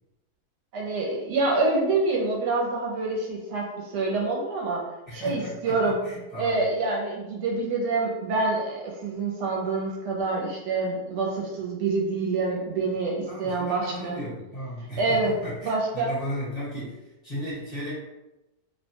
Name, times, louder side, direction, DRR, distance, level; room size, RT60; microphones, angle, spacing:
voice 1, 0.7-4.8 5.1-6.0 6.4-14.2 15.0-15.3 15.6-16.1, right 3 dB, 75° right, -2 dB, 1.2 m, -26 dB
voice 2, 5.1-5.8 6.0-6.6 13.3-17.9, equal, 25° left, -10 dB, 1.2 m, -35 dB
2.8 x 2.2 x 2.7 m, 0.99 s
omnidirectional pair, 1.8 m